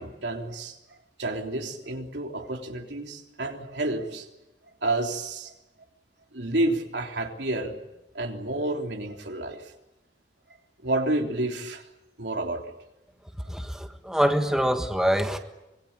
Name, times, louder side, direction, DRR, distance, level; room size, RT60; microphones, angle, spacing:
voice 1, 0.0-4.3 4.8-5.5 6.3-7.7 8.1-9.7 10.8-11.9 12.2-12.7, right 2 dB, 75° right, 2 dB, 3.4 m, -30 dB
voice 2, 13.5-15.4, equal, 5° right, 5 dB, 1.5 m, -25 dB
25.0 x 22.5 x 8.8 m, 0.93 s
head